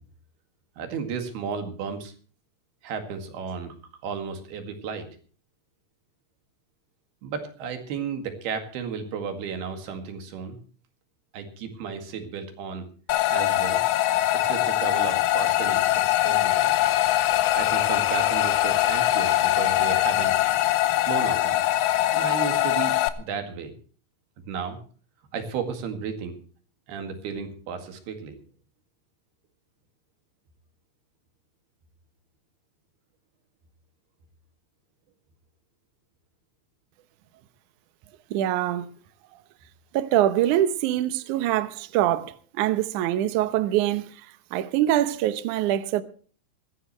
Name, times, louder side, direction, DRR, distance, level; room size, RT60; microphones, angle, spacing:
voice 1, 0.8-2.1 2.8-5.1 7.2-10.6 11.3-12.9 13.3-13.8 14.3-16.8 17.5-20.3 21.0-21.6 22.1-23.7 24.5-24.8 25.3-26.4 26.9-28.4, right 6 dB, 70° right, 3.9 m, -33 dB
sound 1, 13.1-23.1, left 15 dB, 85° left, 3.0 m, -22 dB
voice 2, 38.3-38.9 39.9-44.1 44.5-46.0, right 12 dB, 85° right, 1.7 m, -24 dB
20.0 x 15.0 x 3.2 m
omnidirectional pair, 4.9 m